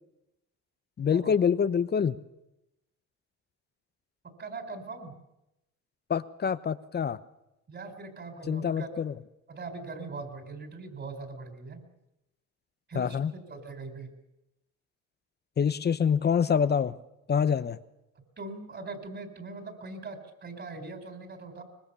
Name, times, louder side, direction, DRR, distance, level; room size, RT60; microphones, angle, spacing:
voice 1, 1.0-2.2 6.1-7.2 8.5-9.1 12.9-13.3 15.6-17.0 17.3-17.8, left 7 dB, 35° left, 14 dB, 0.9 m, -26 dB
voice 2, 4.4-5.1 7.7-8.9 9.5-11.8 12.9-14.1 18.4-21.6, right 3 dB, 35° right, 6 dB, 4.8 m, -41 dB
24.0 x 20.5 x 7.0 m, 0.89 s
cardioid pair, 95°, 30 cm